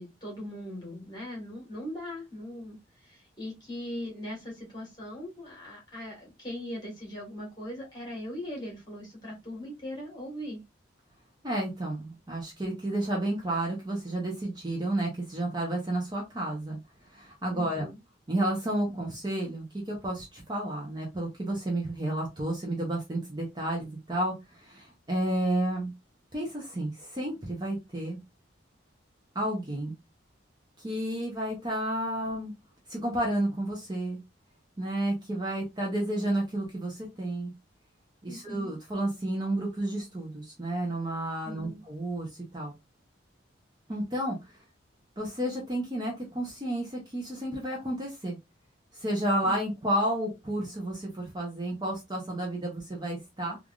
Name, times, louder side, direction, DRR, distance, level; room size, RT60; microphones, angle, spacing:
voice 1, 0.0-10.6 17.5-18.0 38.2-38.7 41.4-41.8 49.4-49.5, left 1 dB, 20° left, -3 dB, 1.5 m, -40 dB
voice 2, 11.4-16.8 17.1-17.9 18.3-25.9 26.3-28.2 29.3-29.9 30.8-32.5 32.9-34.2 34.8-37.5 38.2-42.7 43.9-44.5 45.2-48.4 48.9-53.6, right 1 dB, 20° right, -1 dB, 0.6 m, -31 dB
3.2 x 2.4 x 2.3 m, 0.22 s
head